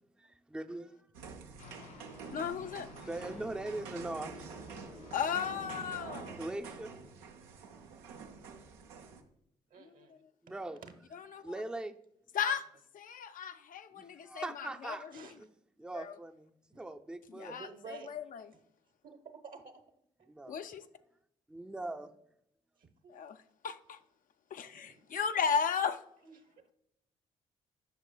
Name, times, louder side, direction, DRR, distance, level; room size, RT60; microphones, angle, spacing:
voice 1, 0.2-1.0 3.0-5.0 6.4-6.9 10.4-10.8 11.4-12.0 13.9-15.1 15.4-15.5 15.8-17.6 20.3-20.6 21.5-22.1, right 2 dB, 5° right, 0.5 m, -41 dB
sound 1, 1.1-9.2, right 5 dB, 90° right, 0.6 m, -47 dB
sound 2, 1.6-6.6, left 1 dB, 90° left, 2.2 m, -52 dB
voice 2, 2.3-2.9 5.1-6.4 9.8-9.9 11.1-11.4 12.3-12.6 12.9-15.3 15.9-16.1 17.4-18.5 20.5-20.8 23.1-23.4 23.6-24.0 24.5-26.0, left 7 dB, 55° left, 0.5 m, -35 dB
voice 3, 9.7-10.2 10.5-10.9 12.5-12.6 15.1-15.4 16.7-16.8 17.5-18.1 19.0-19.8 20.2-20.4 22.8-22.9 24.7-25.0 26.2-26.7, right 5 dB, 60° right, 1.0 m, -51 dB
8.1 x 5.9 x 2.2 m
hypercardioid pair, 45°, 16 cm